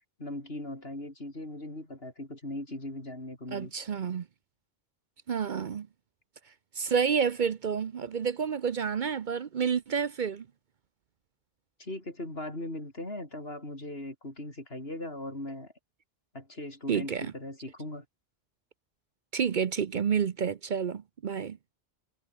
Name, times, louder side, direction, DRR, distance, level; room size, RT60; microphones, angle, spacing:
voice 1, 0.0-3.7 11.8-15.7 16.3-18.1, left 1 dB, 70° left, 6.8 m, -39 dB
voice 2, 3.5-4.3 5.3-5.9 6.7-10.5 16.9-17.3 19.3-21.6, right 7 dB, 55° right, 0.8 m, -29 dB
omnidirectional pair, 1.1 m